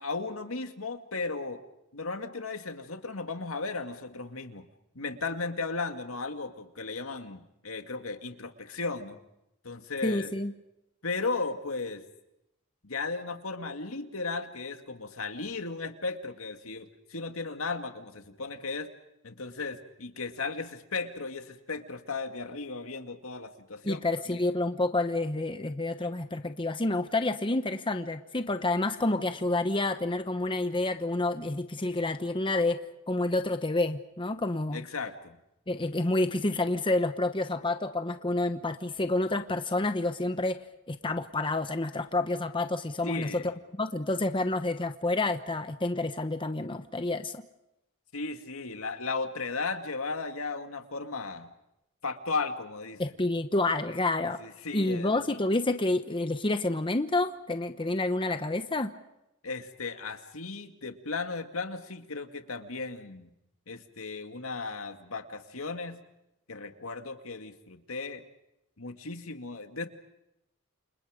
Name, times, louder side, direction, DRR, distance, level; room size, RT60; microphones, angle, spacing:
voice 1, 0.0-1.6 1.9-4.7 4.9-9.2 9.6-10.3 11.0-12.0 12.8-18.9 19.2-24.0 24.3-24.4 34.7-35.4 43.0-43.5 48.1-51.5 52.0-53.0 54.4-55.2 59.4-63.3 63.7-66.0 66.5-68.2 68.8-69.9, left 4 dB, 80° left, 6 dB, 2.3 m, -35 dB
voice 2, 10.0-10.5 23.8-32.8 33.1-34.8 35.7-40.6 40.9-43.5 43.8-47.4 53.0-54.4 54.7-58.9, left 2 dB, 25° left, 8 dB, 1.0 m, -29 dB
29.5 x 27.0 x 5.2 m, 0.87 s
head